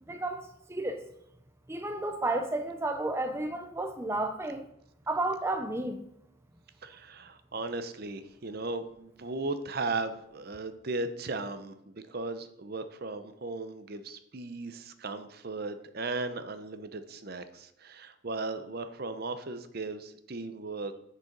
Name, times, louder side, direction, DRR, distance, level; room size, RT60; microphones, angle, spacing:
voice 1, 0.1-1.0 1.7-4.7 5.1-6.1, right 2 dB, 10° right, 6 dB, 0.4 m, -32 dB
voice 2, 6.8-20.9, right 3 dB, 50° right, 10 dB, 0.7 m, -36 dB
7.5 x 6.7 x 5.3 m, 0.78 s
head